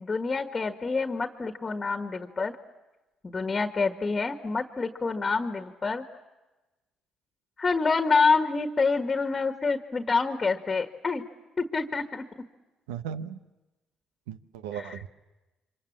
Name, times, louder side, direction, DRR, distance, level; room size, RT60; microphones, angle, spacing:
voice 1, 0.0-2.6 3.2-6.0 7.6-11.2 11.6-12.2 14.7-15.0, left 4 dB, 30° left, 7 dB, 1.6 m, -27 dB
voice 2, 12.9-13.4 14.3-15.1, right 8 dB, 85° right, 12 dB, 0.8 m, -36 dB
29.0 x 25.0 x 7.4 m, 1.1 s
hypercardioid pair, 60°, 0 cm